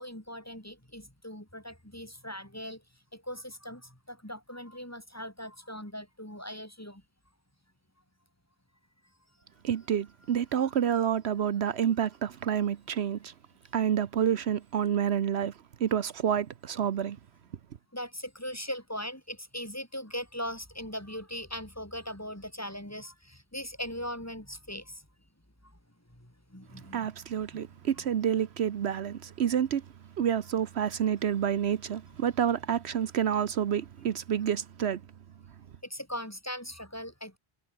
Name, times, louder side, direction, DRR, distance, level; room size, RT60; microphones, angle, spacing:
voice 1, 0.0-2.8 3.1-3.8 4.1-7.0 17.9-25.0 26.5-27.1 35.9-37.4, equal, 15° left, 4.0 m, -39 dB
voice 2, 9.6-13.3 13.7-15.5 15.8-17.2 26.9-29.8 30.2-35.0, right 9 dB, 75° right, 1.1 m, -28 dB
omnidirectional pair, 1.1 m